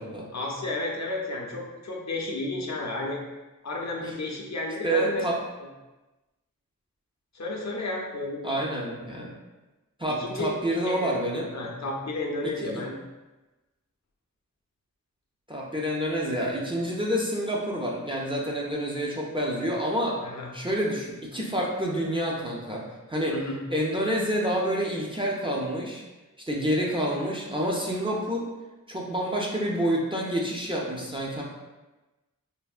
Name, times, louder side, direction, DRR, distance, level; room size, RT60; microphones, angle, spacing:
voice 1, 0.3-3.2 3.6-5.2 7.3-8.7 10.1-10.5 10.8-11.1 11.5-13.0 20.2-20.5 23.3-23.6, left 2 dB, 55° left, -1 dB, 0.5 m, -32 dB
voice 2, 4.8-5.4 8.4-9.3 10.0-11.5 12.6-12.8 15.5-20.2 20.5-22.8 23.1-23.3 23.7-26.0 26.5-28.5 28.9-31.4, equal, 15° right, -4 dB, 0.4 m, -28 dB
3.3 x 2.1 x 2.3 m, 1.1 s
wide cardioid pair, 80°, 33 cm